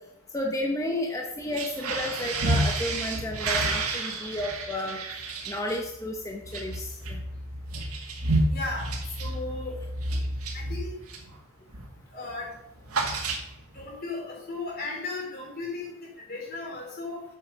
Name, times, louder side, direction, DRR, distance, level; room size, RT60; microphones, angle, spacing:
voice 1, 0.3-5.0 5.5-7.2, left 1 dB, 15° left, 1 dB, 0.9 m, -32 dB
sound 1, 1.4-11.4 11.7-12.0 12.3-13.8, right 2 dB, 80° right, 1.9 m, -30 dB
voice 2, 8.5-8.9 9.2-9.8 10.5-11.0 12.1-12.5 13.7-17.2, left 3 dB, 45° left, -1 dB, 3.4 m, -36 dB
8.1 x 7.7 x 5.2 m, 0.83 s
head